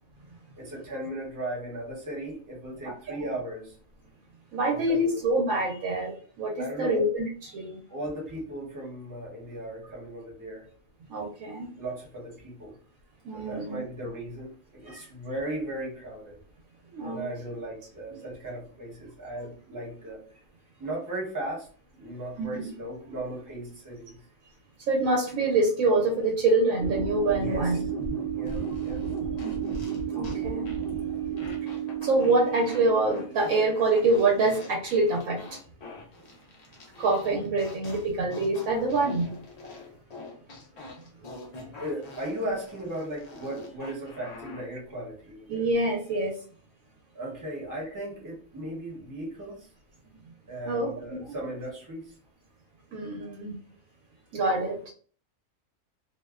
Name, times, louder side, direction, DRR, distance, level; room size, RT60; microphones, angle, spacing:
voice 1, 0.6-3.8 4.7-5.2 6.6-7.0 7.9-10.6 11.7-12.7 13.3-16.4 17.0-20.2 20.8-21.7 22.0-24.2 27.4-27.7 28.3-29.0 41.8-45.6 47.1-49.7 50.5-52.1, right 1 dB, 20° right, -3 dB, 0.6 m, -37 dB
voice 2, 2.8-3.2 4.5-7.8 11.1-11.7 13.2-13.8 14.9-15.1 16.9-17.2 22.4-22.7 24.9-27.8 29.4-30.7 31.6-35.6 37.0-39.3 41.7-41.8 45.5-46.4 50.6-50.9 51.2-51.3 52.9-53.6 54.3-54.8, right 2 dB, 85° right, -1 dB, 1.0 m, -26 dB
sound 1, 26.8-33.4, right 7 dB, 65° right, 1.0 m, -32 dB
sound 2, 28.5-30.4 30.7-30.9 31.4-32.8 33.1-44.7, left 3 dB, 60° left, 0.4 m, -45 dB
2.6 x 2.1 x 2.3 m, 0.43 s
omnidirectional pair, 1.4 m